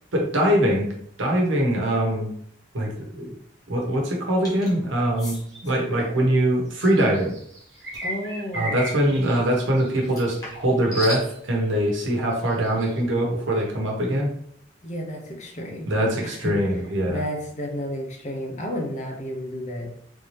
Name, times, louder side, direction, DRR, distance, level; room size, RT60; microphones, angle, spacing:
voice 1, 0.1-0.9 1.2-2.3 2.7-3.3 3.7-5.4 5.6-7.3 8.5-14.3 15.9-17.2, right 1 dB, 85° right, -1 dB, 1.0 m, -22 dB
sound 1, 4.4-4.7 5.2-5.4 7.9-8.1 10.0-11.3, left 2 dB, 20° left, 1.2 m, -35 dB
sound 2, 5.2-5.8 6.7-11.6 12.3-13.0, equal, 65° right, 1.4 m, -37 dB
voice 2, 5.8-6.3 8.0-9.1 14.8-15.9 16.2-16.5 17.1-19.9, equal, 35° left, 1 dB, 0.7 m, -32 dB
3.6 x 2.8 x 3.2 m, 0.67 s
head